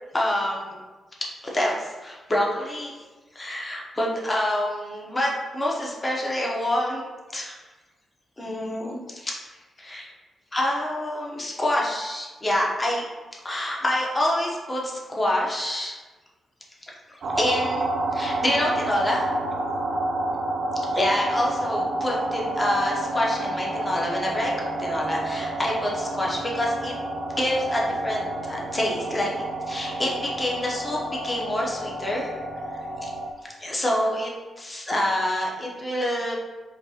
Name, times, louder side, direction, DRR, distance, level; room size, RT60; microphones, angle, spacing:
voice 1, 0.1-0.8 1.4-3.0 3.3-7.0 7.3-7.6 8.4-9.3 9.8-10.1 10.5-13.1 13.4-15.9 17.4-19.3 20.9-26.9 27.4-32.4 33.0-33.1 33.6-34.3 34.6-36.3, left 1 dB, 20° left, -3 dB, 0.8 m, -27 dB
sound 1, 17.2-33.3, right 1 dB, 65° right, 0.4 m, -29 dB
5.3 x 2.3 x 2.8 m, 1.3 s
cardioid pair, 90°, 0 cm